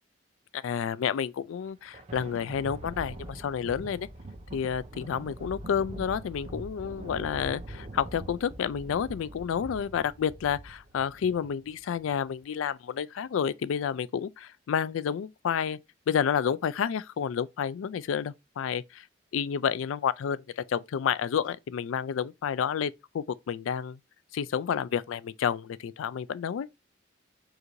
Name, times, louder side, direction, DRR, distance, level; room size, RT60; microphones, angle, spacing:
voice 1, 0.5-4.1 4.5-15.8 16.1-19.1 19.3-24.0 24.3-26.7, left 7 dB, 80° left, 0.3 m, -30 dB
Thunder, 1.5-12.3, right 1 dB, 30° right, 0.6 m, -43 dB
4.8 x 2.6 x 3.0 m
head